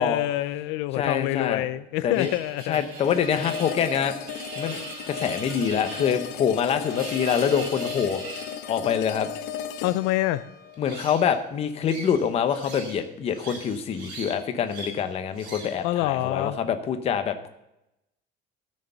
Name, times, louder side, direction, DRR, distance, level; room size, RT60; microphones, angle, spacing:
voice 1, 0.0-2.8 9.8-10.4 15.8-16.6, left 16 dB, 90° left, 14 dB, 0.6 m, -26 dB
voice 2, 1.0-1.7 2.0-2.3 2.7-4.1 4.6-4.8 5.1-8.2 8.6-9.3 10.8-17.5, left 7 dB, 30° left, 8 dB, 0.9 m, -25 dB
sound 1, 2.1-8.6 10.7-11.4 11.8-13.0 13.3-14.3 14.7-15.0 15.3-15.8, right 3 dB, 55° right, 4.7 m, -40 dB
sound 2, 3.0-12.1, left 9 dB, 55° left, 1.0 m, -36 dB
13.5 x 6.6 x 6.8 m, 0.88 s
cardioid pair, 180°, 20 cm